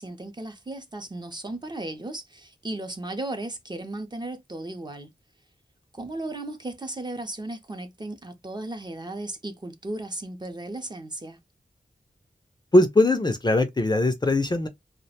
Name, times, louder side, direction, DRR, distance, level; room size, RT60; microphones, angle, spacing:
voice 1, 0.0-5.1 5.9-11.4, right 2 dB, 25° right, 0.5 m, -35 dB
voice 2, 12.7-14.7, left 2 dB, 25° left, 0.4 m, -20 dB
2.4 x 2.1 x 2.7 m
wide cardioid pair, 70°, 17 cm